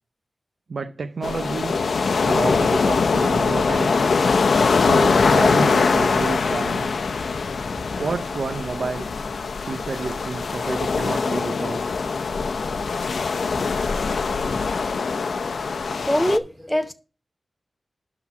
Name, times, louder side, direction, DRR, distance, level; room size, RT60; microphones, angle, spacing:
voice 1, 0.7-1.8 2.2-4.2 4.7-7.1 8.0-9.1 9.6-12.0 14.6-14.7, right 4 dB, 70° right, 0.6 m, -29 dB
sound 1, 1.2-16.4, left 4 dB, 85° left, 0.6 m, -22 dB
voice 2, 16.0-16.9, equal, 5° left, 0.8 m, -22 dB
11.5 x 3.9 x 6.0 m
wide cardioid pair, 100°, 0 cm